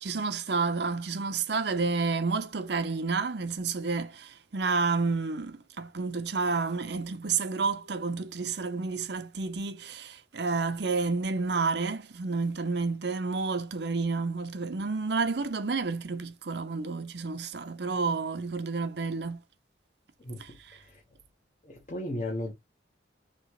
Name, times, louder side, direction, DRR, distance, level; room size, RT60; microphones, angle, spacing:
voice 1, 0.0-19.4 20.4-20.8, right 4 dB, 60° right, 0.7 m, -30 dB
voice 2, 20.2-21.0 21.6-22.5, left 1 dB, 40° left, 1.1 m, -36 dB
4.1 x 3.0 x 3.0 m
head